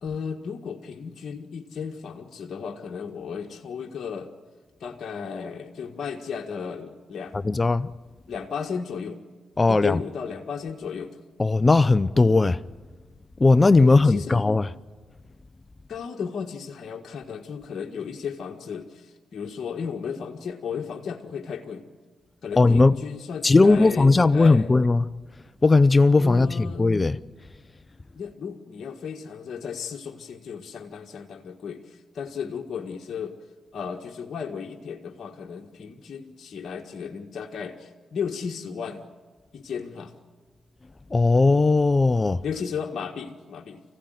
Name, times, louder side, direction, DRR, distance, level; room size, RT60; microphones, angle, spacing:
voice 1, 0.0-4.3 4.8-7.4 8.3-9.2 9.7-11.2 13.8-14.4 15.9-21.8 22.4-24.7 26.2-26.8 28.1-33.3 33.7-39.0 39.5-40.1 42.4-43.8, left 6 dB, 65° left, 1.7 m, -34 dB
voice 2, 7.4-7.9 9.6-10.0 11.4-12.6 13.4-14.7 22.6-23.0 23.4-25.1 25.6-27.2 41.1-42.4, left 3 dB, 30° left, 0.7 m, -18 dB
25.0 x 16.5 x 9.3 m
supercardioid pair, 45°, 0 cm